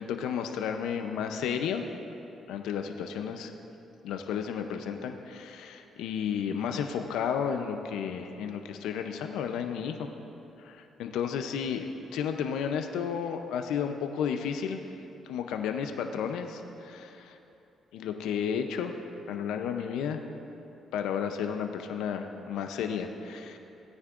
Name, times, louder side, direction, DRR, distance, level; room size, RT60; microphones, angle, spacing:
voice 1, 0.0-1.8 2.5-3.5 4.0-10.1 10.6-14.8 15.3-17.4 17.9-18.9 19.3-20.2 20.9-23.6, left 7 dB, 90° left, 6 dB, 0.6 m, -32 dB
17.0 x 9.5 x 2.5 m, 2.9 s
cardioid pair, 90°, 0 cm